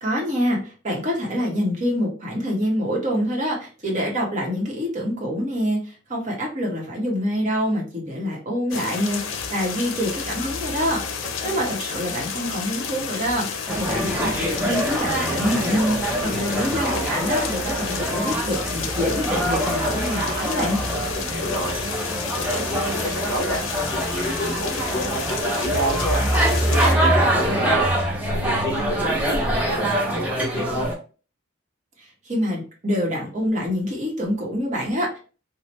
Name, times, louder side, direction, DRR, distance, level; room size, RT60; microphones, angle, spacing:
voice 1, 0.0-11.0 11.4-14.3 14.6-20.8 32.0-35.2, equal, 35° right, -2 dB, 0.9 m, -26 dB
sound 1, 8.7-27.0, left 6 dB, 85° left, 0.5 m, -31 dB
voice 2, 11.4-11.7 21.1-21.8 22.3-23.6 23.9-26.2 26.7-27.9 28.3-30.9, equal, 15° left, -3 dB, 1.3 m, -29 dB
sound 2, 13.7-30.9, right 1 dB, 10° right, 0.6 m, -24 dB
3.1 x 2.1 x 2.8 m, 0.37 s
head